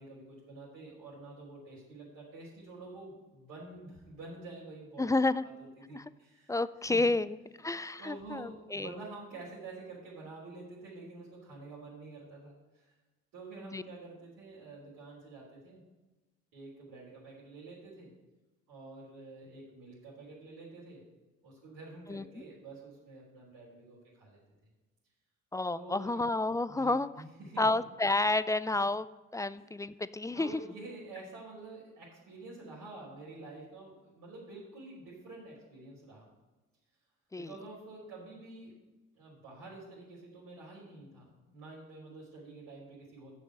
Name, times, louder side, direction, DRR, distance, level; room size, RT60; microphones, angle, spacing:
voice 1, 0.0-5.1 5.4-5.5 5.9-6.5 6.9-7.0 8.0-12.9 13.3-15.8 16.5-18.1 18.7-21.0 21.4-24.4 25.7-26.4 26.7-27.7 29.5-29.7 30.3-36.3 37.4-38.8 39.2-43.3, right 3 dB, 70° right, -10 dB, 3.6 m, -48 dB
voice 2, 5.0-5.5 5.9-6.0 6.5-8.9 13.7-13.8 22.1-22.2 25.5-27.1 27.6-29.1 29.3-30.6 37.3-37.5, left 2 dB, 10° left, 15 dB, 0.4 m, -30 dB
7.2 x 7.0 x 7.7 m, 1.1 s
hypercardioid pair, 45°, 35 cm